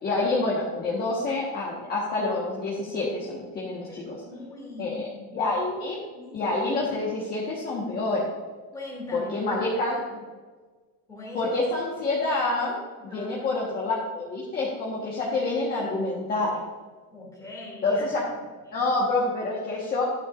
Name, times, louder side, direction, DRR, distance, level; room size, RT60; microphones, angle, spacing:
voice 1, 0.0-4.2 4.8-5.1 5.3-6.0 6.3-8.3 9.1-10.0 11.3-12.8 13.0-16.6 17.8-18.2 18.7-20.0, left 2 dB, 25° left, -4 dB, 1.4 m, -27 dB
voice 2, 3.9-5.6 6.1-6.4 8.7-9.6 10.0-10.2 11.1-11.5 13.0-13.5 17.1-18.1 18.7-18.8, left 2 dB, 10° left, -4 dB, 2.6 m, -42 dB
12.0 x 10.0 x 2.6 m, 1.4 s
cardioid pair, 175°, 37 cm